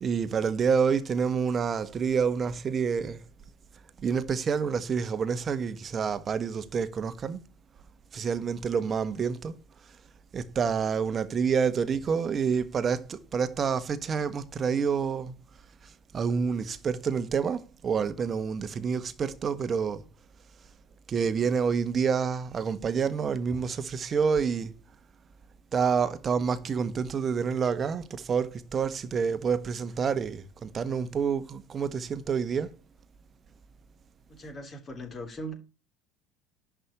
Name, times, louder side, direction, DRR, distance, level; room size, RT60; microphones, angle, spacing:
voice 1, 0.0-3.2 4.0-7.4 8.1-9.6 10.3-15.3 16.1-20.0 21.1-24.7 25.7-32.7, right 6 dB, 35° right, 1.4 m, -28 dB
voice 2, 34.3-35.5, equal, 30° left, 3.2 m, -39 dB
11.0 x 5.2 x 8.2 m
figure-of-eight pair, 60°, 0 cm